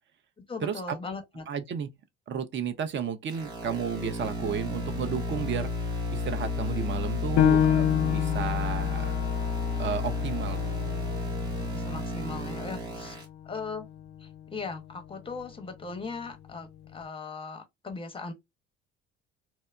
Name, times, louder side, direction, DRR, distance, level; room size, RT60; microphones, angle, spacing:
voice 1, 0.5-1.5 11.6-13.2 13.4-13.9 14.2-18.3, left 4 dB, 15° left, 0.7 m, -38 dB
voice 2, 1.5-1.9 2.3-5.7 6.1-9.1 9.8-10.7, right 7 dB, 35° right, 0.5 m, -33 dB
sound 1, 3.3-13.2, left 3 dB, 85° right, 1.1 m, -31 dB
Piano, 7.4-12.5 13.0-13.1 13.7-14.2, left 9 dB, 70° left, 0.5 m, -28 dB
2.8 x 2.0 x 2.3 m
hypercardioid pair, 55°, 32 cm